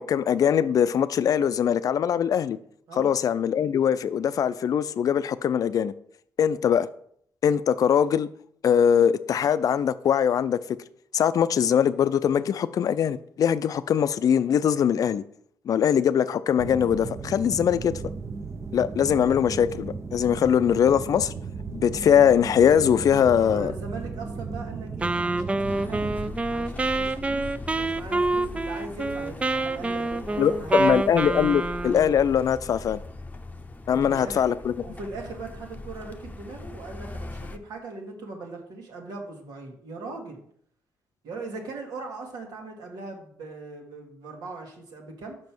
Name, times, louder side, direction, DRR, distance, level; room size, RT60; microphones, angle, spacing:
voice 1, 0.0-2.6 3.0-5.9 6.4-6.9 7.4-8.3 8.6-10.6 11.1-15.2 15.7-17.9 18.7-21.3 21.7-23.7 30.4-33.0 33.9-34.7, left 8 dB, 60° left, 0.4 m, -22 dB
sound 1, 16.6-26.3, right 5 dB, 40° right, 0.8 m, -35 dB
voice 2, 23.4-26.1 26.5-31.0 33.9-34.4 34.8-40.4 41.2-45.4, right 3 dB, 80° right, 1.9 m, -40 dB
Wind instrument woodwind instrument, 25.0-32.1, right 2 dB, 20° right, 0.4 m, -27 dB
sound 2, 25.6-37.6, left 2 dB, 20° left, 0.7 m, -40 dB
5.4 x 5.3 x 6.0 m
cardioid pair, 75°, 7 cm